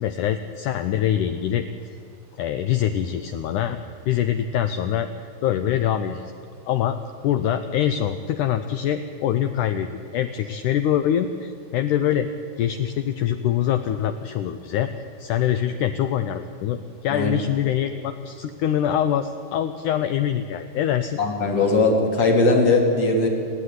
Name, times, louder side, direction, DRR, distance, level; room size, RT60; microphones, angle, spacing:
voice 1, 0.0-1.7 2.4-3.8 4.1-5.1 5.4-6.3 6.7-7.0 7.2-12.3 12.6-14.9 15.2-21.2, left 10 dB, 80° left, 9 dB, 1.8 m, -24 dB
voice 2, 21.2-23.3, left 3 dB, 45° left, 1 dB, 3.3 m, -19 dB
28.5 x 9.6 x 9.6 m, 2.4 s
omnidirectional pair, 4.4 m